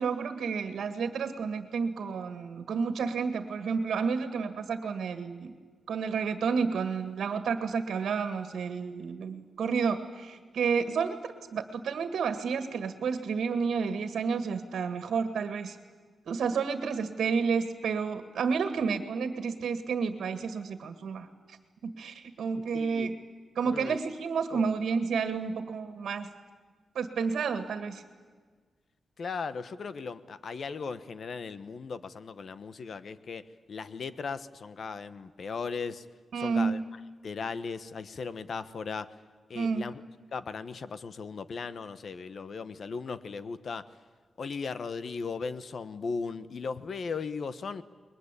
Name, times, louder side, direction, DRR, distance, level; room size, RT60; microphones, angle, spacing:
voice 1, 0.0-5.5 5.9-11.2 11.5-15.8 16.2-21.6 21.8-23.1 23.5-26.3 26.9-28.0 36.3-36.8 39.5-39.9, right 5 dB, 85° right, 9 dB, 1.8 m, -30 dB
voice 2, 22.7-23.1 23.6-24.0 24.5-24.7 29.2-36.0 36.3-36.8 37.2-39.1 39.5-40.0 40.3-43.9 44.4-47.8, left 5 dB, 55° left, 13 dB, 1.2 m, -37 dB
29.0 x 22.0 x 8.4 m, 1.5 s
wide cardioid pair, 120°, 0 cm